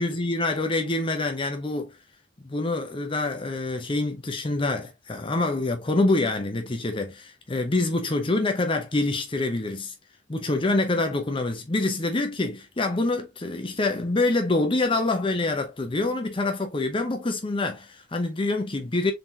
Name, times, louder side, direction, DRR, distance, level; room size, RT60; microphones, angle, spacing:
voice 1, 0.0-1.9 2.4-9.9 10.3-19.1, left 2 dB, 25° left, 0.6 m, -26 dB
3.8 x 3.7 x 2.7 m
head